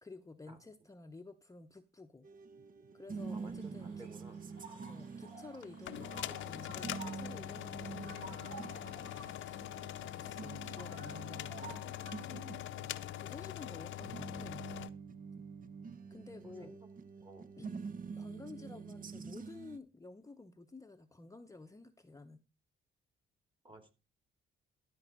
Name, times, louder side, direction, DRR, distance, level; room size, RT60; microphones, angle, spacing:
voice 1, 0.0-2.3 2.9-4.1 4.9-8.7 9.0-9.8 10.1-12.4 13.1-14.7 16.1-16.7 17.6-17.8 18.2-22.4, left 3 dB, 15° left, 6 dB, 0.8 m, -52 dB
sound 1, 2.2-19.8, right 5 dB, 45° right, 0.9 m, -47 dB
sound 2, 3.2-12.3, right 3 dB, 80° right, 4.8 m, -54 dB
voice 2, 3.3-4.4 16.4-16.8 17.2-17.5 23.6-23.9, right 2 dB, 25° right, 8 dB, 2.6 m, -54 dB
sound 3, 5.6-14.9, left 13 dB, 75° left, 0.7 m, -43 dB
13.0 x 5.3 x 5.4 m, 0.30 s
cardioid pair, 90°, 20 cm